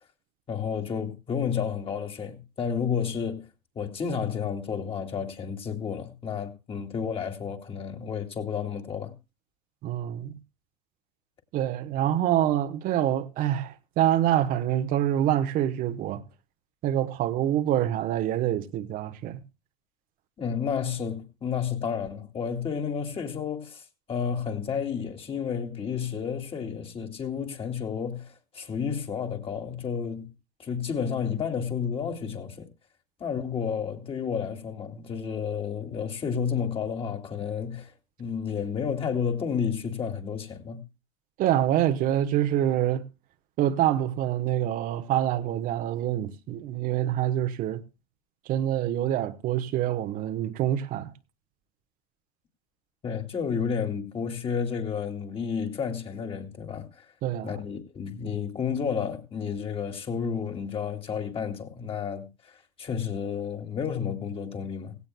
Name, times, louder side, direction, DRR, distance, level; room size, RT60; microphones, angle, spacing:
voice 1, 0.5-3.5 3.8-9.1 20.4-23.8 24.1-30.3 30.6-32.7 33.2-37.9 38.2-40.8 53.0-57.0 57.4-62.3 62.8-65.0, left 7 dB, 30° left, 2.6 m, -31 dB
voice 2, 9.8-10.4 11.5-16.2 16.8-19.4 41.4-43.0 43.6-47.8 48.5-51.1 57.2-57.6, right 11 dB, 50° right, 1.2 m, -26 dB
16.5 x 16.5 x 2.2 m
hypercardioid pair, 90°, 18 cm